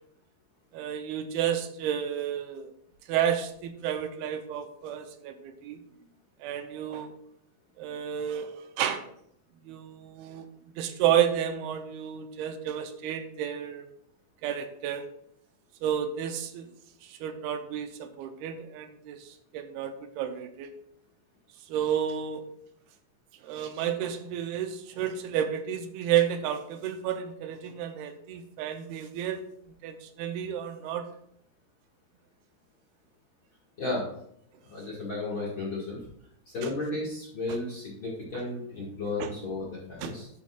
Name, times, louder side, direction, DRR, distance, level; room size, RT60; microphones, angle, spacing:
voice 1, 0.7-2.7 3.1-5.8 6.4-7.1 7.8-9.0 9.7-10.5 10.8-13.9 14.4-15.1 15.8-16.7 17.0-20.7 21.7-22.4 23.4-29.4 29.8-31.1 36.6-36.7 39.2-39.3 40.0-40.1, right 9 dB, 85° right, 8 dB, 2.5 m, -31 dB
voice 2, 34.7-36.0 36.5-40.3, left 2 dB, 45° left, -5 dB, 1.8 m, -33 dB
12.0 x 7.1 x 2.4 m, 0.70 s
omnidirectional pair, 4.6 m